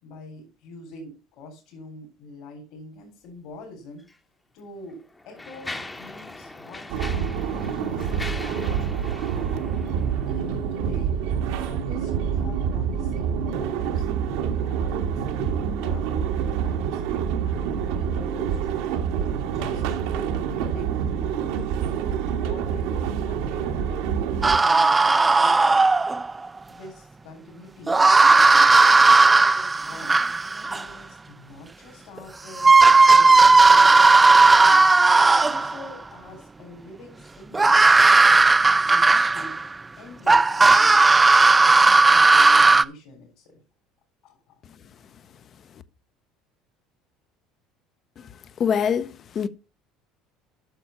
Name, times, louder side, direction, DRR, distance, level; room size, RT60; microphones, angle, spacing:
voice 1, 0.0-4.0 4.5-9.0 10.3-11.1 11.6-14.1 14.6-15.3 15.7-17.0 17.4-19.0 19.5-20.9 21.1-21.5 22.0-25.8 26.7-28.7 29.2-30.2 30.6-34.1 34.5-34.8 35.3-37.8 38.3-39.5 40.0-41.1 41.6-43.6 44.2-44.6, left 1 dB, 65° left, 3.9 m, -44 dB
Mechanisms, 4.0-4.2 4.9-10.6, left 2 dB, 10° left, 0.9 m, -40 dB
sound 1, 6.9-24.6, right 7 dB, 85° right, 1.6 m, -27 dB
sound 2, 24.4-26.3 27.9-30.9 32.2-32.3 32.6-35.8 37.5-39.7 40.3-42.8, right 3 dB, 15° right, 0.4 m, -15 dB
voice 2, 48.6-49.5, left 7 dB, 40° left, 0.7 m, -24 dB
9.1 x 6.3 x 5.7 m
cardioid pair, 125°, 0 cm